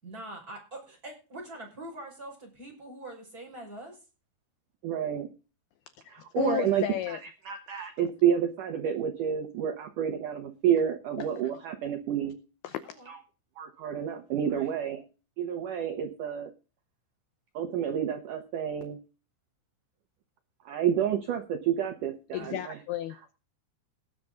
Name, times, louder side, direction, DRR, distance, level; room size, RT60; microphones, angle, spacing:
voice 1, 0.0-4.0 12.8-13.1 14.4-14.7 22.4-22.6, right 1 dB, 20° right, 0 dB, 6.0 m, -44 dB
voice 2, 4.8-5.3 6.1-6.8 7.5-12.4 13.1-13.2 13.6-15.0 15.4-16.5 17.5-19.0 20.7-22.8, right 9 dB, 70° right, 7 dB, 1.9 m, -29 dB
voice 3, 6.1-7.2 7.7-7.9 11.2-11.5 12.6-13.0 22.3-23.2, left 12 dB, 80° left, 11 dB, 2.3 m, -34 dB
19.0 x 7.8 x 3.8 m, 0.33 s
omnidirectional pair, 5.3 m